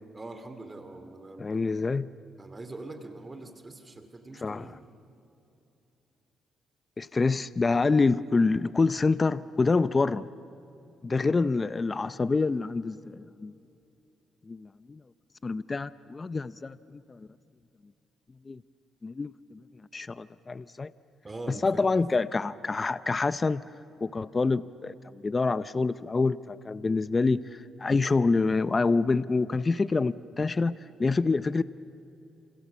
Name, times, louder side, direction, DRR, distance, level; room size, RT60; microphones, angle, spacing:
voice 1, 0.1-1.5 2.4-4.9 21.2-22.1, right 2 dB, 25° right, 2.5 m, -43 dB
voice 2, 1.4-2.1 4.4-4.6 7.0-10.3 11.0-13.5 14.5-15.0 15.4-17.3 18.5-18.6 19.0-19.6 19.9-20.9 21.5-23.6 24.0-31.6, left 3 dB, 30° left, 0.6 m, -27 dB
29.0 x 27.5 x 7.2 m
cardioid pair, 90°, 0 cm